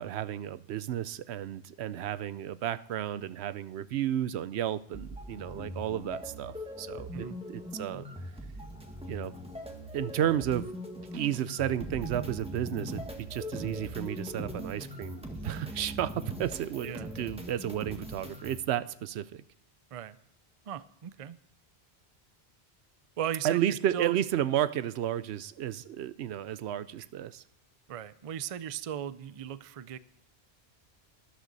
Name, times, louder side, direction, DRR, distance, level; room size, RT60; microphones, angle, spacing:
voice 1, 0.0-8.1 9.1-9.4 9.9-10.7 11.1-19.4 23.4-27.4, right 11 dB, 80° right, 16 dB, 0.8 m, -32 dB
sound 1, 4.9-18.6, equal, 5° right, 1.5 m, -41 dB
voice 2, 20.7-21.4 23.2-24.1 27.9-30.0, right 9 dB, 45° right, 16 dB, 0.4 m, -37 dB
13.0 x 11.5 x 4.0 m, 0.74 s
omnidirectional pair, 1.1 m